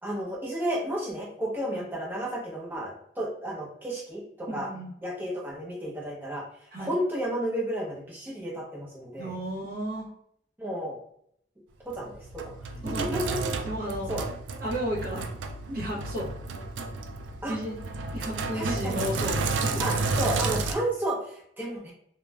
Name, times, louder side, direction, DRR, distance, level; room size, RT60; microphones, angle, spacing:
voice 1, 0.0-4.7 5.0-6.4 6.8-9.3 10.6-11.0 11.8-13.5 14.1-14.3 17.4-17.6 18.5-19.1 19.8-21.9, right 1 dB, 10° right, -4 dB, 0.7 m, -32 dB
voice 2, 4.5-4.9 6.7-6.9 9.2-10.1 12.8-13.4 13.6-14.1 14.6-15.2 15.7-16.3 17.5-17.8 18.1-19.9 20.2-20.6, equal, 55° right, -4 dB, 0.9 m, -33 dB
Sink (filling or washing), 11.9-20.7, right 3 dB, 85° right, 0.3 m, -31 dB
2.3 x 2.0 x 3.3 m, 0.68 s
head